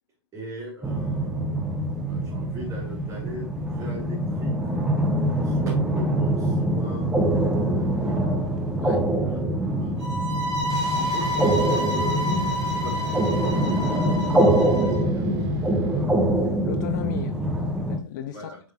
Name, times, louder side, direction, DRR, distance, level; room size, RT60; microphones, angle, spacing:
voice 1, 0.3-1.6 2.1-4.8 5.4-8.3 9.2-9.4 9.7-10.5 10.8-15.4 15.7-16.2 16.8-17.2 18.2-18.6, right 1 dB, 20° right, 3.3 m, -40 dB
sound 1, 0.8-18.0, right 1 dB, 5° right, 0.7 m, -24 dB
voice 2, 8.8-9.1 16.4-18.5, left 10 dB, 45° left, 0.5 m, -36 dB
sound 2, 10.0-15.0, left 1 dB, 75° right, 2.2 m, -29 dB
sound 3, 10.7-16.6, right 4 dB, 55° right, 1.6 m, -40 dB
7.7 x 4.8 x 3.0 m
figure-of-eight pair, 110°, 14 cm